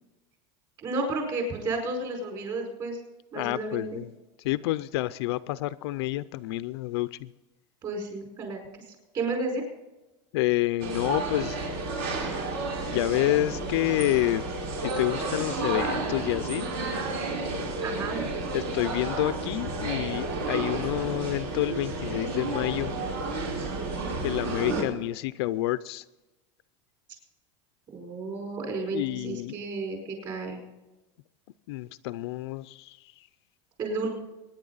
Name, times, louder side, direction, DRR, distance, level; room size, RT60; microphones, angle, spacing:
voice 1, 0.8-3.0 3.3-4.0 7.8-8.6 9.1-9.6 17.8-18.3 27.9-30.7 33.8-34.1, right 3 dB, 30° right, 4.9 m, -32 dB
voice 2, 3.3-4.1 4.4-7.3 10.3-11.6 12.9-14.4 14.8-16.7 18.5-22.9 24.2-26.0 28.9-29.6 31.7-33.0, left 17 dB, 65° left, 0.5 m, -28 dB
sound 1, 10.8-24.8, right 3 dB, 60° right, 4.4 m, -31 dB
23.5 x 10.5 x 4.0 m
supercardioid pair, 170°, 15 cm